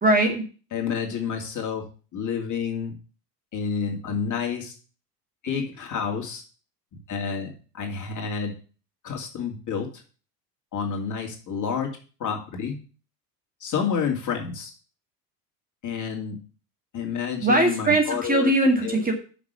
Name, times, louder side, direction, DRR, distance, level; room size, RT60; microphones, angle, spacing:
voice 1, 0.0-0.4 17.4-19.1, right 1 dB, 15° right, 2 dB, 2.1 m, -20 dB
voice 2, 0.7-1.8 2.1-2.9 3.5-4.7 5.4-6.4 7.1-8.5 9.0-9.9 10.7-11.9 12.2-12.8 13.6-14.7 15.8-16.4 16.9-18.5 18.8-19.0, left 6 dB, 35° left, 1 dB, 2.6 m, -29 dB
6.2 x 5.9 x 6.9 m, 0.38 s
hypercardioid pair, 85°, 49 cm